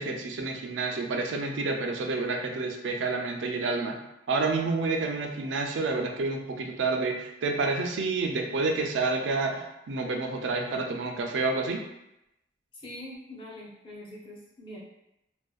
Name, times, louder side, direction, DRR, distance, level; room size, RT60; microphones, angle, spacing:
voice 1, 0.0-4.0 4.3-11.9, right 3 dB, 85° right, 3 dB, 0.4 m, -29 dB
voice 2, 12.7-14.8, left 1 dB, 30° left, -6 dB, 0.7 m, -43 dB
2.5 x 2.2 x 2.3 m, 0.87 s
head